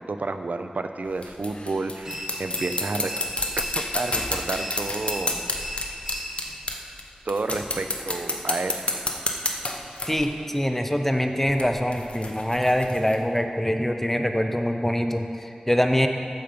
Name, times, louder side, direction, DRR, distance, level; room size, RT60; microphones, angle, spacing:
voice 1, 0.0-3.1 3.6-3.7 3.9-5.4 6.7-7.0 7.2-8.9, right 3 dB, 85° right, 7 dB, 0.5 m, -30 dB
sound 1, 1.1-7.0 7.3-10.2 11.5-13.2, left 2 dB, 50° left, 0.9 m, -30 dB
sound 2, 2.0-6.7, left 1 dB, 15° right, 1.6 m, -36 dB
voice 2, 10.1-16.1, equal, 10° left, 5 dB, 0.7 m, -24 dB
13.5 x 5.3 x 5.1 m, 2.5 s
wide cardioid pair, 55°, 3 cm